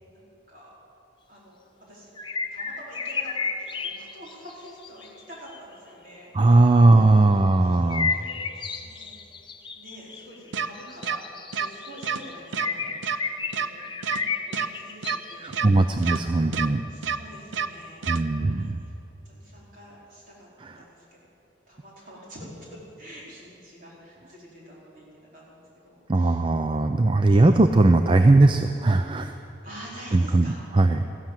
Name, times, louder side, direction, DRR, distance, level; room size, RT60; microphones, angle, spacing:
voice 1, 0.1-0.7 1.3-1.6 1.9-2.1 2.5-9.2 9.7-11.2 11.5-16.6 16.9-18.1 18.4-18.9 19.2-20.5 20.7-21.2 21.7-26.4 29.6-30.6, equal, 50° right, -5 dB, 4.6 m, -47 dB
sound 1, 2.2-5.6 7.9-15.6 16.1-16.2, left 5 dB, 25° left, 0.8 m, -32 dB
voice 2, 6.3-8.1 15.4-16.8 18.1-18.8 20.6-20.7 26.1-29.3 30.1-31.0, right 2 dB, 25° right, 7 dB, 0.4 m, -19 dB
sound 2, 10.5-10.7 11.0-11.2 11.5-11.7 12.0-12.2 12.5-12.7 13.0-13.2 13.5-13.7 14.0-14.2 14.5-14.7 15.0-15.2 15.5-15.7 16.0-16.2 16.5-16.7 17.0-17.2 17.5-17.7 18.0-18.2, right 7 dB, 85° right, 0.6 m, -27 dB
15.0 x 12.0 x 7.6 m, 2.8 s
head